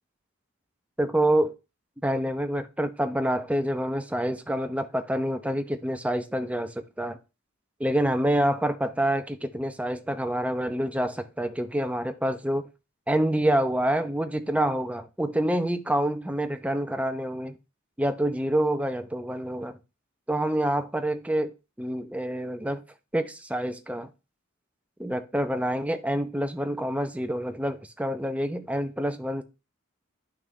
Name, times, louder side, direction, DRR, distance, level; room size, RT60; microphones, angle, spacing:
voice 1, 1.0-1.5 2.0-7.2 7.8-12.6 13.1-17.6 18.0-19.8 20.3-22.8 23.1-24.1 25.0-29.4, right 1 dB, 5° right, 0.7 m, -27 dB
11.0 x 5.9 x 3.3 m
head